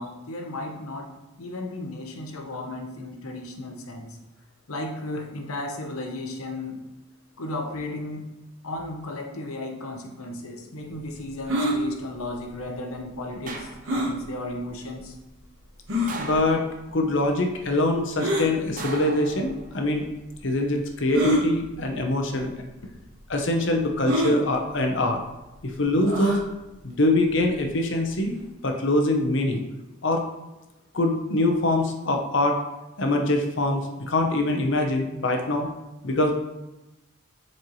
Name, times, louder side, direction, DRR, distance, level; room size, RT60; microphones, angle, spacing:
voice 1, 0.0-4.2 4.7-6.8 7.4-8.3 8.6-15.2, left 2 dB, 90° left, 3 dB, 0.9 m, -35 dB
sound 1, 11.5-11.8 13.9-14.1 14.9-15.0 15.9-16.2 18.2-18.5 19.6-19.7 21.1-21.4 22.3-22.5 22.8-22.9 24.0-24.4 26.1-26.4, equal, 65° right, 1.3 m, -24 dB
sound 2, 13.5-14.2 16.1-17.0 18.8-19.9 21.3-21.8, right 3 dB, 40° right, 0.6 m, -38 dB
voice 2, 16.2-16.6 16.9-20.0 20.4-22.5 23.3-25.2 25.6-26.4 26.8-29.6 30.0-30.2 30.9-32.6 33.0-35.7 36.0-36.3, left 2 dB, 60° left, 3 dB, 0.8 m, -24 dB
7.5 x 4.3 x 3.1 m, 1.0 s
head